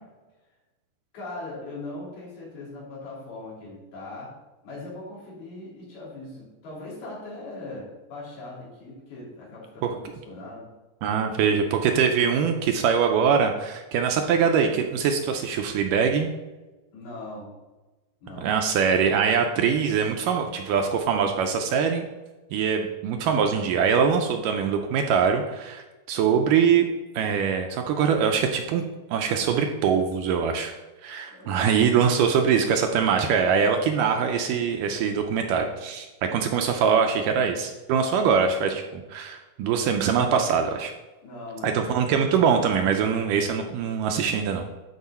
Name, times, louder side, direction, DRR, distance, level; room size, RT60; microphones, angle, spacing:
voice 1, 1.1-4.3 4.6-10.0 10.2-10.7 16.9-17.5 18.2-18.5 31.3-32.0 41.2-41.8, left 2 dB, 85° left, -7 dB, 5.1 m, -40 dB
voice 2, 11.0-16.3 18.4-22.0 22.5-26.9 27.2-28.8 29.1-30.7 31.0-40.9 41.6-44.7, right 6 dB, 80° right, 4 dB, 2.1 m, -23 dB
12.0 x 4.8 x 4.3 m, 1.1 s
omnidirectional pair, 4.2 m